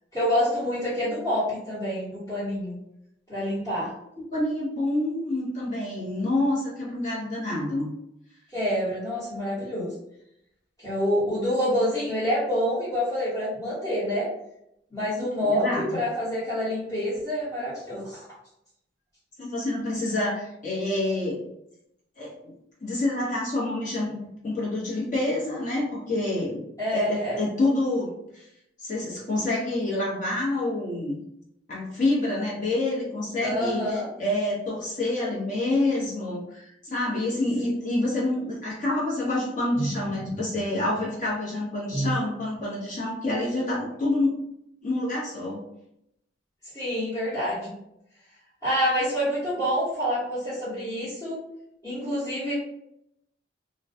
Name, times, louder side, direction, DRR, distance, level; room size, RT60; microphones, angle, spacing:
voice 1, 0.1-2.8 3.3-3.9 8.5-9.9 10.8-14.3 14.9-18.2 26.8-27.4 33.4-34.1 37.6-37.7 39.8-40.4 41.9-42.2 46.7-47.7 48.6-51.4 51.8-52.5, equal, 20° left, -12 dB, 1.0 m, -27 dB
voice 2, 4.2-7.9 15.0-16.0 19.4-21.4 22.2-22.5 22.8-24.2 24.4-26.6 26.9-28.5 28.8-31.2 31.7-44.4 44.8-45.6, left 2 dB, 45° left, -5 dB, 0.8 m, -27 dB
2.2 x 2.1 x 2.7 m, 0.79 s
head